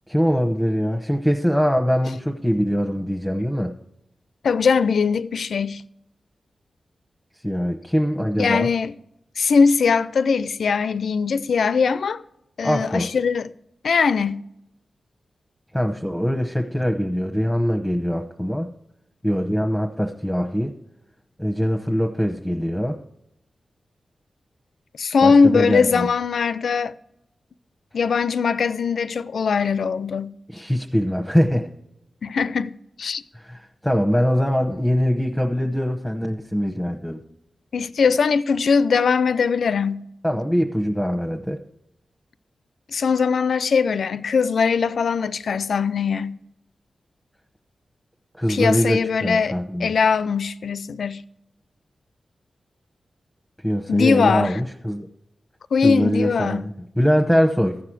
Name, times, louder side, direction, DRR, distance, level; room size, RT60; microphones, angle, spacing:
voice 1, 0.1-3.7 7.4-8.7 12.6-13.1 15.7-18.7 19.2-20.7 21.4-23.0 25.2-26.1 30.5-31.7 33.3-37.2 40.2-41.6 48.3-49.9 53.6-55.1 55.8-56.7 57.0-57.8, equal, ahead, 1.0 m, -22 dB
voice 2, 4.4-5.8 8.4-8.9 9.4-12.2 12.6-13.5 13.8-14.4 25.0-27.0 27.9-30.3 32.2-33.2 37.7-40.1 42.9-46.4 48.5-49.5 49.8-51.2 53.9-54.6 55.7-56.7, left 5 dB, 80° left, 0.4 m, -20 dB
14.5 x 4.9 x 6.1 m
cardioid pair, 45°, 0 cm